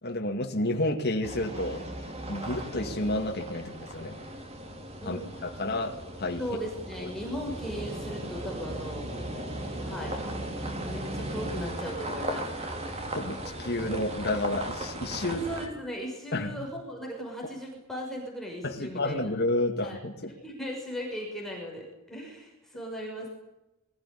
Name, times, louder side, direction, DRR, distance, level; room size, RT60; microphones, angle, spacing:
voice 1, 0.0-1.9 2.3-4.2 5.1-6.4 7.0-7.1 13.2-15.5 16.3-16.7 18.6-20.3, left 1 dB, 50° left, 2 dB, 2.2 m, -30 dB
sound 1, 1.2-15.7, right 1 dB, 30° right, 3.2 m, -37 dB
voice 2, 6.4-9.1 9.8-10.2 10.8-12.5 15.3-19.3 19.8-20.0 20.4-23.3, equal, ahead, -2 dB, 6.2 m, -37 dB
22.0 x 15.5 x 10.0 m, 0.95 s
head